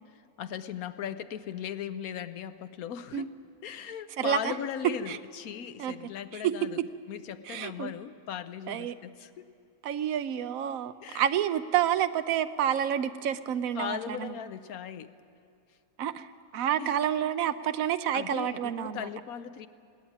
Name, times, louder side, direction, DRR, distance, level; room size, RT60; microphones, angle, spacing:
voice 1, 0.1-3.3 3.6-6.8 7.1-9.5 11.0-11.3 13.7-15.1 16.8-17.0 18.1-19.7, left 9 dB, 75° left, 12 dB, 1.2 m, -38 dB
voice 2, 4.2-4.5 5.1-5.2 5.8-6.5 7.5-7.9 8.7-9.0 9.8-14.3 16.0-19.1, right 10 dB, 70° right, 11 dB, 1.1 m, -29 dB
19.5 x 17.5 x 8.8 m, 2.4 s
omnidirectional pair, 1.6 m